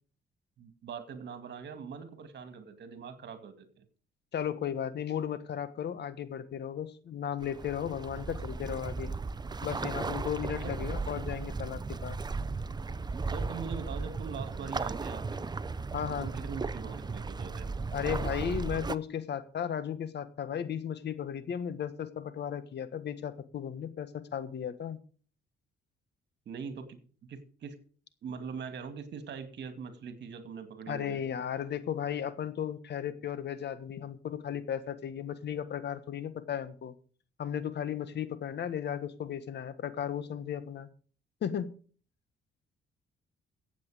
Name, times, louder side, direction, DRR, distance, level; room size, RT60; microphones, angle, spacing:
voice 1, 0.6-3.8 10.6-10.8 13.3-15.5 16.1-17.7 26.5-27.0 27.3-27.7 28.2-31.2, right 6 dB, 60° right, 9 dB, 2.4 m, -42 dB
voice 2, 4.3-9.1 9.6-12.2 15.9-16.3 17.9-25.0 30.9-36.9 37.4-40.9 41.4-41.7, left 9 dB, 60° left, 13 dB, 1.5 m, -35 dB
sound 1, 7.4-18.9, right 4 dB, 20° right, 0.6 m, -36 dB
15.0 x 8.4 x 5.1 m, 0.42 s
cardioid pair, 90°, 20 cm